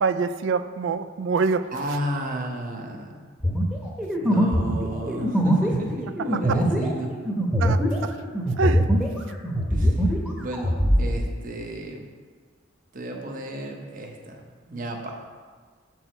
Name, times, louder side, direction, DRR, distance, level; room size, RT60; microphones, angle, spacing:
voice 1, 0.0-1.7 6.5-6.6 7.6-8.1 8.6-8.9, right 4 dB, 70° right, 12 dB, 0.3 m, -25 dB
voice 2, 1.7-3.2 4.2-7.2 9.7-12.0 12.9-15.2, right 1 dB, 40° right, 2 dB, 0.8 m, -33 dB
sound 1, 3.4-9.2 9.4-11.0, equal, 5° right, 0.9 m, -22 dB
7.6 x 4.7 x 4.4 m, 1.5 s
head